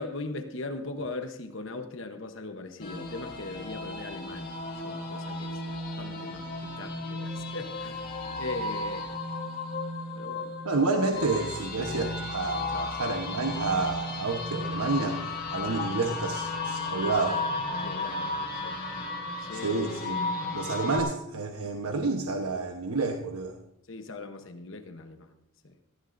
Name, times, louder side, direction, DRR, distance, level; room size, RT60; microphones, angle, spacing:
voice 1, 0.0-8.0 8.4-9.1 10.2-10.5 17.8-18.8 19.4-19.7 23.9-25.3 25.6-25.7, left 3 dB, 60° left, 6 dB, 1.0 m, -39 dB
sound 1, 2.8-21.0, left 2 dB, 45° left, 2.1 m, -34 dB
voice 2, 10.6-17.5 19.5-20.2 20.5-23.6, right 3 dB, 85° right, 3 dB, 1.1 m, -29 dB
18.0 x 15.0 x 2.6 m, 0.84 s
head